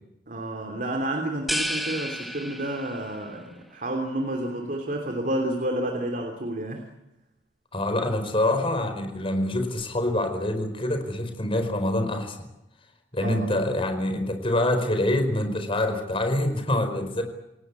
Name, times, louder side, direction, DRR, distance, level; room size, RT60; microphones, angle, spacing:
voice 1, 0.3-6.8 13.2-13.6, right 1 dB, 50° right, 4 dB, 3.1 m, -30 dB
sound 1, 1.5-3.2, equal, ahead, 1.5 m, -31 dB
voice 2, 7.7-12.4 13.1-17.2, left 1 dB, 30° left, 7 dB, 4.7 m, -25 dB
28.5 x 18.0 x 8.4 m, 0.91 s
head